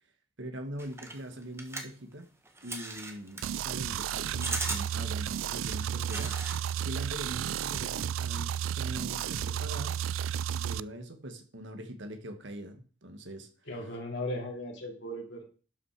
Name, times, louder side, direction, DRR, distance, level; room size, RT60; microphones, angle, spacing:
voice 1, 0.4-2.3 2.6-10.0 10.5-13.5, right 1 dB, 65° right, 1.7 m, -42 dB
sound 1, 0.8-6.6 6.9-7.4, right 2 dB, 15° right, 1.4 m, -39 dB
sound 2, 3.4-10.8, right 9 dB, 85° right, 0.4 m, -33 dB
voice 2, 13.7-15.4, left 1 dB, 60° left, 2.8 m, -37 dB
12.0 x 5.9 x 4.9 m
head